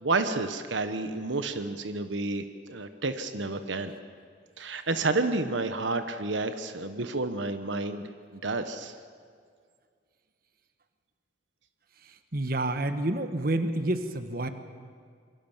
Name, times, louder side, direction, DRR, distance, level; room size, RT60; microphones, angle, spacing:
voice 1, 0.0-3.9 4.6-8.0 8.3-8.9, right 3 dB, 80° right, 9 dB, 1.3 m, -30 dB
voice 2, 12.0-14.5, right 1 dB, 50° right, 9 dB, 1.4 m, -29 dB
27.0 x 23.5 x 7.4 m, 2.1 s
head